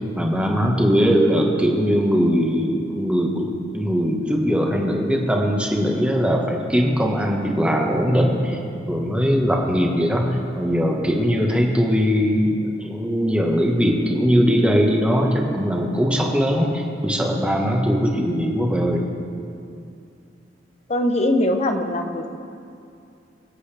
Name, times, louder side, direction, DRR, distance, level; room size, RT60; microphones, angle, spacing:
voice 1, 0.1-8.6 8.9-12.5 12.8-19.0, equal, 5° right, 0 dB, 1.3 m, -20 dB
voice 2, 20.9-22.4, left 1 dB, 35° left, 6 dB, 0.9 m, -21 dB
24.0 x 8.1 x 3.4 m, 2.4 s
head